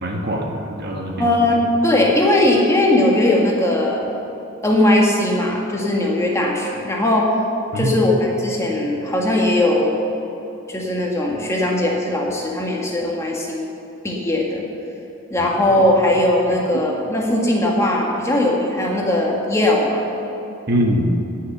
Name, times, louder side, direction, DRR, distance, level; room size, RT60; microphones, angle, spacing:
voice 1, 0.0-1.3 7.7-7.9 15.4-15.5 20.7-21.1, equal, 50° right, 1 dB, 1.4 m, -22 dB
voice 2, 1.2-4.1 4.6-7.3 7.8-10.0 10.7-13.7 14.0-14.6 15.3-20.0, left 1 dB, 15° left, -2 dB, 1.7 m, -19 dB
18.0 x 6.5 x 6.8 m, 2.9 s
head